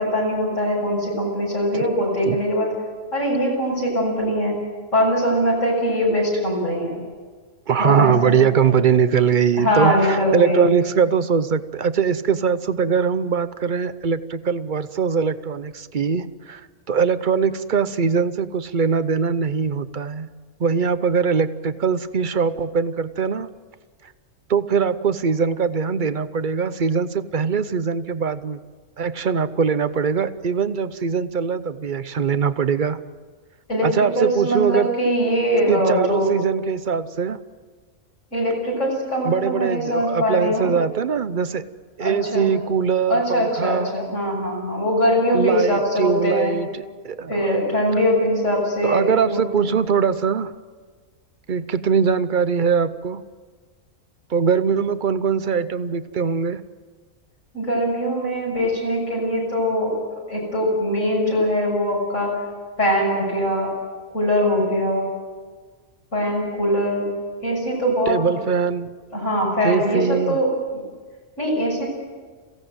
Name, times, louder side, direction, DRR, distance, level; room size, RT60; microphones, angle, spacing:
voice 1, 0.0-2.7 3.1-4.6 4.9-7.0 7.8-8.3 8.6-8.8 9.6-10.7 33.7-36.3 38.3-40.7 42.0-42.5 43.1-46.6 47.3-49.7 57.5-59.9 60.3-62.4 62.8-63.7 64.1-65.1 66.1-67.1 67.4-68.4 69.1-70.8 71.4-71.9, equal, 65° left, -3 dB, 7.1 m, -22 dB
voice 2, 7.7-16.6 16.9-20.3 20.6-23.5 24.5-28.6 29.0-33.0 33.8-34.9 35.7-37.4 39.2-41.7 42.0-43.9 45.3-47.5 48.8-50.5 51.5-53.2 54.3-56.6 68.1-69.0 69.6-70.4, right 6 dB, 45° right, 13 dB, 0.8 m, -21 dB
28.0 x 16.5 x 7.9 m, 1.5 s
omnidirectional pair, 1.4 m